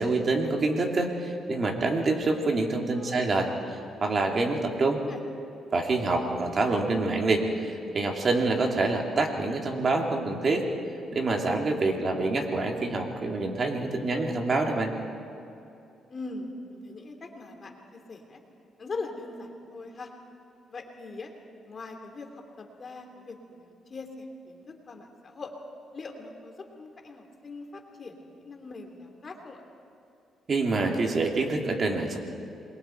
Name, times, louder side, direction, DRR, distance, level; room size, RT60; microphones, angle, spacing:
voice 1, 0.0-3.5 4.0-5.0 5.7-10.7 11.1-14.9 30.5-32.2, right 3 dB, 40° right, 2 dB, 2.9 m, -26 dB
voice 2, 2.9-3.3 4.9-5.2 16.1-18.4 18.8-20.1 20.7-21.3 21.7-22.3 22.6-25.5 25.9-29.6, left 3 dB, 40° left, 3 dB, 3.0 m, -41 dB
27.5 x 21.5 x 4.6 m, 2.7 s
cardioid pair, 90°, 0 cm